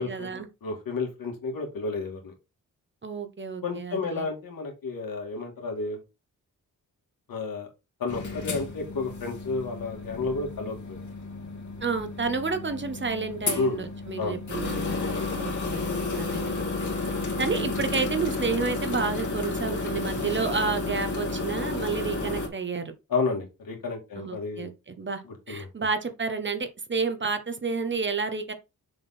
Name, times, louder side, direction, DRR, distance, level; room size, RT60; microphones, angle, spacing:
voice 1, 0.0-0.5 3.0-4.3 11.8-16.6 17.4-22.9 24.2-28.5, right 4 dB, 35° right, 1.1 m, -30 dB
voice 2, 0.6-2.3 3.6-6.0 7.3-7.7 8.0-11.0 13.5-13.8 14.2-14.4 15.1-15.2 17.5-17.6 23.1-24.7 25.3-25.7, left 4 dB, 80° left, 2.4 m, -31 dB
sound 1, 8.1-22.5, left 3 dB, 60° left, 2.4 m, -32 dB
6.8 x 3.9 x 4.4 m
cardioid pair, 95°, 34 cm